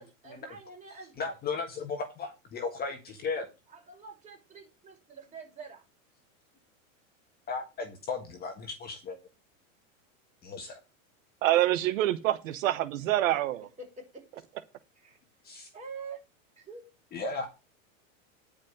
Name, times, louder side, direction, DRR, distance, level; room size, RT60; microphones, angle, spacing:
voice 1, 0.0-1.3 3.7-5.8 13.2-13.3 13.8-14.4 15.0-15.2 15.7-16.2 16.6-16.9, right 4 dB, 15° right, 6.1 m, -46 dB
voice 2, 1.2-3.5 7.5-9.2 10.4-10.8 15.4-15.7 17.1-17.5, left 4 dB, 20° left, 1.6 m, -35 dB
voice 3, 11.4-13.6, right 14 dB, 70° right, 1.1 m, -26 dB
10.5 x 5.2 x 6.5 m
supercardioid pair, 145°, 42 cm